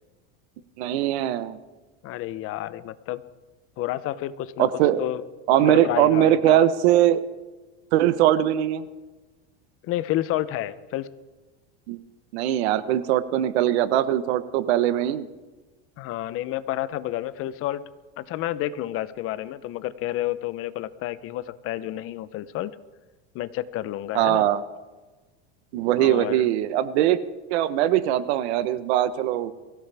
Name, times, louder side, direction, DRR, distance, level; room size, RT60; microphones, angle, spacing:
voice 1, 0.8-1.6 4.6-5.0 5.5-7.2 7.9-8.9 11.9-12.0 12.3-15.3 24.1-24.6 25.7-27.2 27.5-29.5, right 12 dB, 75° right, 13 dB, 1.2 m, -21 dB
voice 2, 2.0-3.2 3.8-4.7 5.0-5.2 5.6-6.6 9.8-11.1 16.0-17.8 18.2-22.8 23.3-24.5 26.0-26.5, left 14 dB, 40° left, 15 dB, 0.8 m, -30 dB
23.5 x 16.5 x 3.5 m, 1.2 s
supercardioid pair, 135°, 33 cm